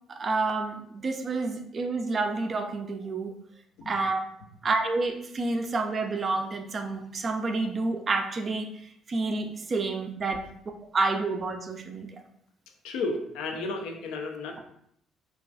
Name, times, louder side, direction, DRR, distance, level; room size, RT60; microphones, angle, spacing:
voice 1, 0.1-3.3 3.9-4.2 4.6-8.7 9.1-10.5 10.9-12.1, right 3 dB, 40° right, 5 dB, 0.3 m, -29 dB
voice 2, 12.8-14.6, left 3 dB, 65° left, 4 dB, 0.3 m, -33 dB
2.2 x 2.2 x 2.4 m, 0.70 s
figure-of-eight pair, 50°, 0 cm